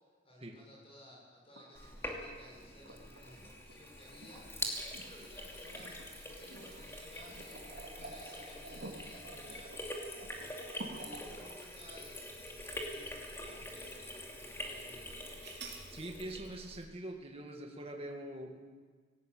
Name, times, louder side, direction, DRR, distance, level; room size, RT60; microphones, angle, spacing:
voice 1, 0.2-9.7 10.3-10.7 10.9-15.4, left 1 dB, 30° left, -2 dB, 7.0 m, -57 dB
sound 1, 1.6-15.5 17.2-17.3, right 1 dB, 75° right, 2.8 m, -55 dB
Sink (filling or washing), 1.7-16.8, left 1 dB, 15° left, 2.6 m, -45 dB
sound 2, 5.0-13.3 13.8-13.9 15.4-15.9, right 4 dB, 55° right, 3.7 m, -53 dB
voice 2, 15.9-18.7, right 1 dB, 30° right, 1 dB, 1.9 m, -44 dB
18.5 x 18.0 x 8.5 m, 1.5 s
head